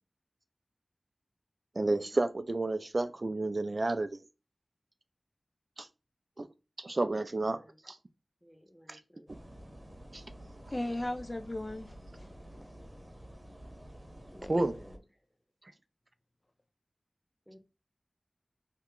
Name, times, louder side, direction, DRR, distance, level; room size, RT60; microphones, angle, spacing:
voice 1, 1.8-4.1 5.8-5.9 6.4-6.5 6.8-8.0 8.9-9.0 9.3-9.4 10.1-10.2 14.5-14.7, right 2 dB, 55° right, 9 dB, 0.3 m, -31 dB
voice 2, 7.4-7.8 8.4-9.5 14.3-15.0 15.7-15.8 17.5-17.6, equal, 5° left, 3 dB, 1.0 m, -55 dB
sound 1, 9.3-15.0, right 1 dB, 25° right, 0.9 m, -50 dB
voice 3, 10.7-12.7 14.4-14.5, left 1 dB, 35° left, 7 dB, 0.3 m, -37 dB
2.8 x 2.2 x 3.6 m, 0.29 s
wide cardioid pair, 45°, 0 cm